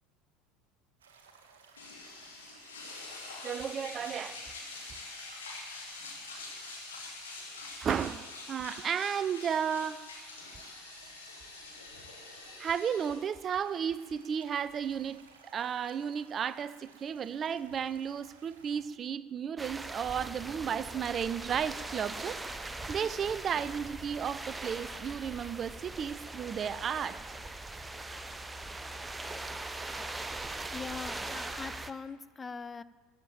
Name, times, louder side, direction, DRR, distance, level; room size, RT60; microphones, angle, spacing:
sound 1, 1.0-18.8, right 5 dB, 70° right, 1.7 m, -59 dB
sound 2, 1.8-15.3, left 3 dB, 75° left, 2.8 m, -45 dB
voice 1, 3.4-4.4 7.8-10.0 12.6-27.2, right 8 dB, 35° right, 17 dB, 0.5 m, -34 dB
sound 3, 19.6-31.9, right 2 dB, 15° right, 0.8 m, -41 dB
voice 2, 30.7-32.8, left 5 dB, 20° left, 16 dB, 0.5 m, -41 dB
14.5 x 7.3 x 8.9 m, 1.4 s
figure-of-eight pair, 70°, 0 cm